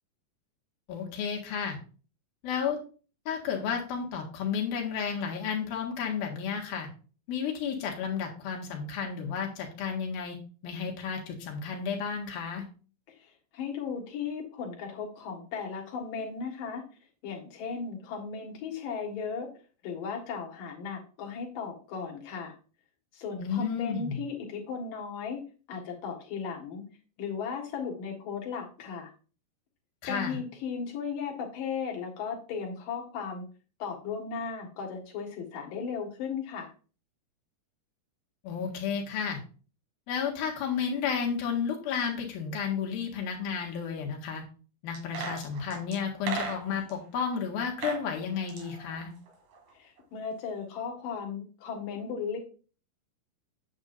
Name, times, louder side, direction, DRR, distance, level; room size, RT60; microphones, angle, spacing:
voice 1, 0.9-1.8 2.4-2.8 3.3-6.9 7.3-10.4 10.6-12.6 23.4-24.2 30.0-30.4 38.4-39.4 40.1-44.4 44.8-49.1, left 6 dB, 85° left, 0 dB, 3.6 m, -32 dB
voice 2, 13.2-16.8 17.2-19.5 19.8-22.5 23.1-25.4 25.7-26.9 27.2-29.1 30.0-33.4 33.8-36.7 49.7-52.4, left 6 dB, 70° left, 1 dB, 3.4 m, -36 dB
sound 1, 44.9-47.0 47.6-48.0 48.3-49.7 50.0-50.1, right 5 dB, 70° right, 3.6 m, -37 dB
8.9 x 8.4 x 2.6 m, 0.37 s
omnidirectional pair, 4.1 m